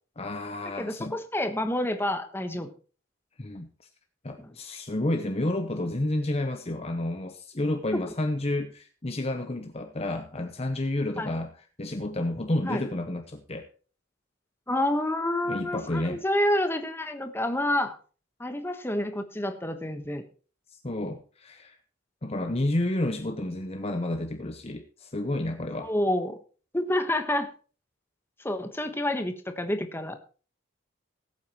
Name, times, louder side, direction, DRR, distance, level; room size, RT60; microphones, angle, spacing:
voice 1, 0.2-1.2 3.4-3.9 4.2-11.5 11.8-13.7 15.5-16.2 20.7-21.8 22.2-25.9, left 1 dB, 30° left, 6 dB, 0.9 m, -30 dB
voice 2, 0.8-2.7 4.4-4.5 11.2-11.3 12.6-12.8 14.7-18.0 18.4-20.2 25.8-26.4 26.7-27.5 28.4-30.2, left 1 dB, 10° left, 7 dB, 1.2 m, -28 dB
19.5 x 8.3 x 3.0 m, 0.38 s
head